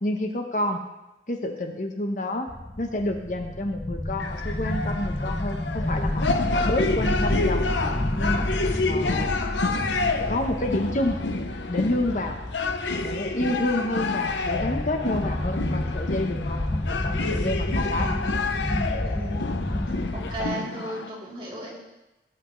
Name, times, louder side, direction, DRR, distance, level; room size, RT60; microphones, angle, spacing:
voice 1, 0.0-0.8 1.3-2.5 2.8-6.3 6.5-7.9 8.2-8.4 8.9-9.4 10.3-11.2 11.7-12.4 13.0-18.1 20.4-20.7, left 1 dB, 45° left, 4 dB, 0.9 m, -29 dB
sound 1, 2.5-20.5, left 1 dB, 15° left, 0.5 m, -30 dB
sound 2, 4.2-21.1, left 3 dB, 80° left, 0.8 m, -29 dB
voice 2, 19.0-19.7 20.1-21.7, right 1 dB, 30° right, -7 dB, 3.4 m, -36 dB
18.5 x 8.6 x 3.2 m, 0.99 s
head